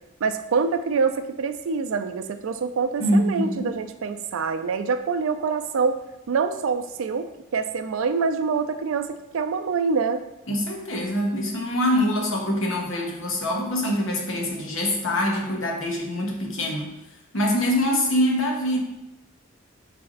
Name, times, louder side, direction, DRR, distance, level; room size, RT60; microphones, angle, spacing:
voice 1, 0.2-6.0 6.3-10.2, right 5 dB, 90° right, 9 dB, 0.4 m, -25 dB
voice 2, 3.0-3.8 10.5-16.9 17.3-18.8, equal, 80° left, 0 dB, 1.0 m, -24 dB
4.1 x 3.3 x 3.9 m, 0.91 s
head